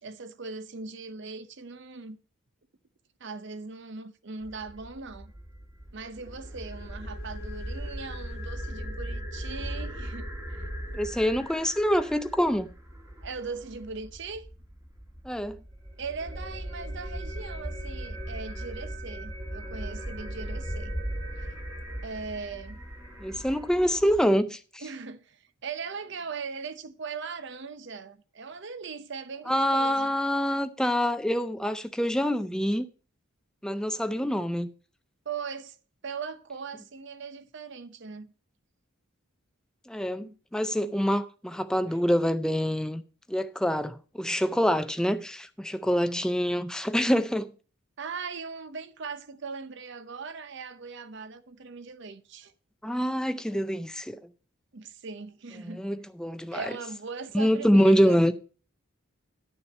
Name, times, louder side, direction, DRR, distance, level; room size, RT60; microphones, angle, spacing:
voice 1, 0.0-2.2 3.2-5.3 5.9-10.7 13.2-14.4 16.0-21.0 21.4-21.5 22.0-22.8 24.8-30.2 35.3-35.8 36.0-38.3 40.2-40.4 40.8-40.9 41.9-42.0 48.0-52.5 54.7-55.8 56.5-58.2, right 5 dB, 55° right, 0.7 m, -39 dB
sound 1, 4.4-24.2, equal, 15° right, 1.4 m, -38 dB
voice 2, 10.9-12.7 15.2-15.6 23.2-24.6 29.5-32.9 33.6-34.7 39.9-43.0 43.3-47.5 52.8-54.2 55.6-56.7 57.3-58.3, equal, 5° left, 0.4 m, -26 dB
11.5 x 6.9 x 4.3 m
head